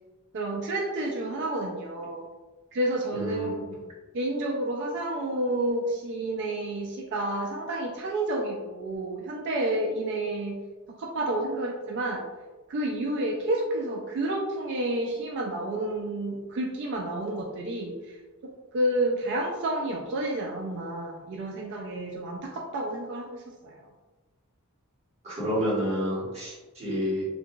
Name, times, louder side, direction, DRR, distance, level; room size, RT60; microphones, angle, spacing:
voice 1, 0.3-2.3 2.7-3.8 4.1-10.6 10.9-12.3 12.7-23.7, right 1 dB, 55° right, 0 dB, 0.3 m, -30 dB
voice 2, 3.1-3.5 25.2-27.2, equal, 30° right, -8 dB, 1.3 m, -29 dB
2.8 x 2.5 x 2.3 m, 1.2 s
head